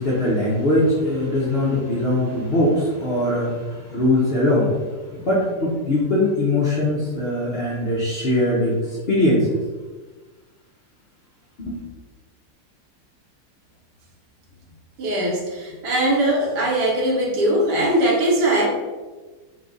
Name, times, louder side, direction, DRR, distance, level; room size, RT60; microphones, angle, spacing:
voice 1, 0.0-4.7 5.1-9.6 11.6-11.8, left 1 dB, 50° left, -6 dB, 0.8 m, -21 dB
voice 2, 15.0-18.7, right 1 dB, 70° right, -2 dB, 1.5 m, -20 dB
4.7 x 2.4 x 3.9 m, 1.3 s
omnidirectional pair, 1.9 m